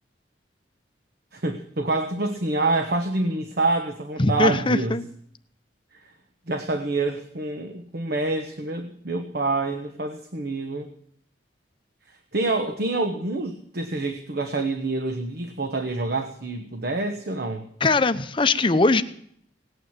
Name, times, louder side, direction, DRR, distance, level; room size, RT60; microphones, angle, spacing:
voice 1, 1.3-5.0 6.5-10.9 12.3-17.7, right 2 dB, 60° right, 6 dB, 1.2 m, -27 dB
voice 2, 4.2-5.0 17.8-19.0, left 3 dB, 30° left, 11 dB, 0.7 m, -20 dB
18.0 x 9.3 x 7.3 m, 0.66 s
head